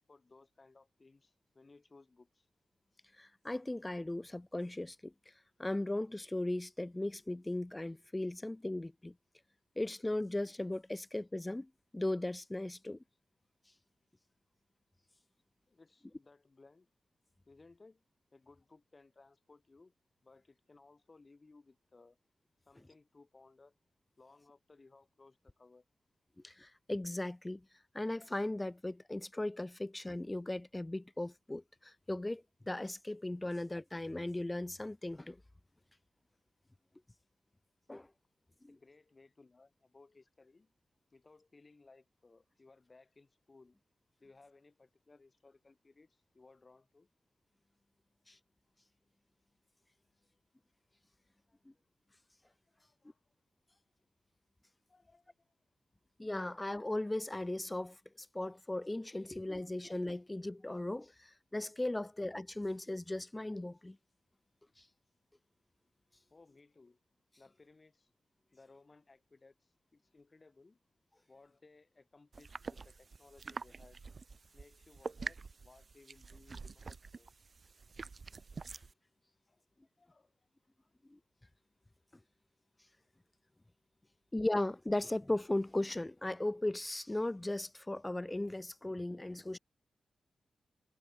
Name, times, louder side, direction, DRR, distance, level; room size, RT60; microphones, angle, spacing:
voice 1, 0.1-2.5 15.7-16.9 17.5-18.0 18.3-19.9 20.2-22.2 22.7-23.8 24.2-25.8 38.7-40.7 41.1-43.8 44.2-47.1 51.5-51.6 52.7-53.2 53.7-53.8 54.9-55.5 66.3-67.0 67.4-68.1 68.5-70.8 71.3-74.0 74.5-77.3 79.5-80.5, left 3 dB, 35° left, 7.2 m, -62 dB
voice 2, 3.2-5.1 5.6-9.1 9.8-13.0 26.4-27.7 27.9-35.4 37.9-38.1 38.6-38.8 48.3-48.4 56.2-64.0 64.8-64.9 78.7-78.8 81.1-81.2 84.3-89.6, left 1 dB, 20° left, 0.7 m, -37 dB
sound 1, 72.3-78.9, right 4 dB, 50° right, 1.8 m, -46 dB
cardioid pair, 55°, 0 cm